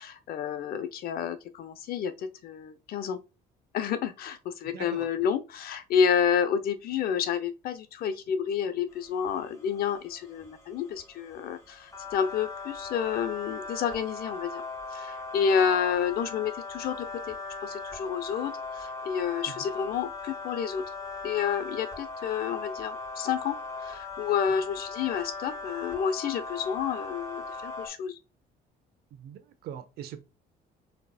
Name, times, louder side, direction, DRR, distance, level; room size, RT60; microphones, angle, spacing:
voice 1, 0.0-3.2 3.7-14.6 14.9-17.4 17.6-20.8 21.2-28.2, left 7 dB, 65° left, 0.7 m, -30 dB
voice 2, 4.7-5.1 19.5-19.6 29.1-30.2, right 9 dB, 70° right, 0.8 m, -41 dB
sound 1, 9.0-27.9, left 3 dB, 20° left, 2.5 m, -39 dB
4.5 x 4.1 x 2.3 m
cardioid pair, 110°, 17 cm